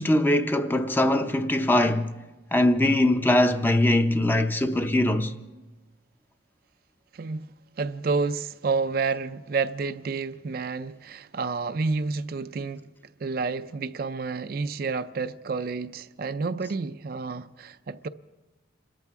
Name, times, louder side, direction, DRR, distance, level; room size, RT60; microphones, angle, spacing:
voice 1, 0.0-2.1 2.5-5.3, left 1 dB, 10° left, 0.6 m, -22 dB
voice 2, 7.1-7.5 7.8-12.8 13.2-18.1, right 4 dB, 50° right, 0.4 m, -29 dB
28.0 x 14.0 x 3.6 m
head